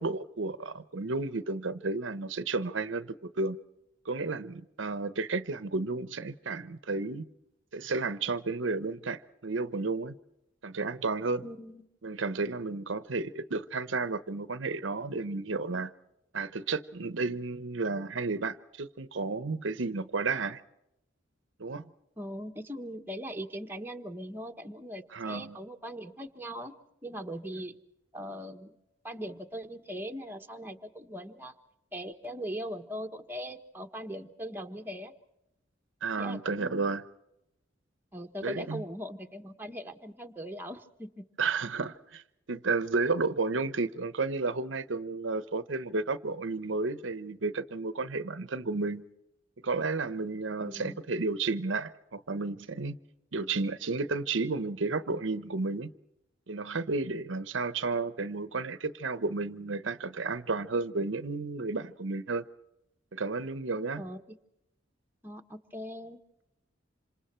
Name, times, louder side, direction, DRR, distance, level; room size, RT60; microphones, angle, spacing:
voice 1, 0.0-3.6 4.0-7.3 7.7-10.1 10.6-11.4 12.0-15.9 16.3-20.6 21.6-21.9 25.1-25.6 36.0-37.0 38.4-38.8 41.4-42.2 42.5-49.1 49.6-53.0 53.3-55.9 56.5-62.4 63.1-64.0, right 3 dB, 70° right, 0.9 m, -32 dB
voice 2, 11.4-11.8 22.2-26.7 27.0-27.7 28.1-28.8 29.0-31.5 31.9-35.1 36.2-36.9 38.1-41.3 50.6-51.0 64.0-64.2 65.2-66.2, equal, 10° right, 1.3 m, -40 dB
27.0 x 27.0 x 4.5 m
head